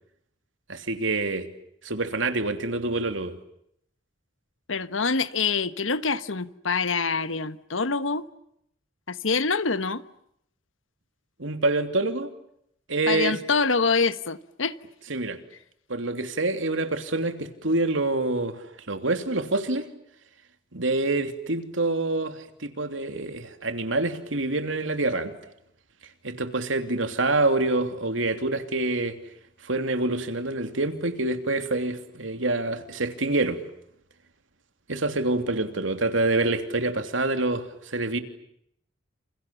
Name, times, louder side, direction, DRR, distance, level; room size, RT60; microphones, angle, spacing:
voice 1, 0.7-1.5 1.8-3.3 11.4-12.3 12.9-13.4 15.1-15.4 15.9-19.9 20.7-25.3 26.2-29.2 29.6-33.6 34.9-38.2, right 2 dB, 80° right, 3.1 m, -26 dB
voice 2, 4.7-8.2 9.1-10.0 13.1-14.8, left 4 dB, 90° left, 1.3 m, -25 dB
29.0 x 29.0 x 7.1 m
head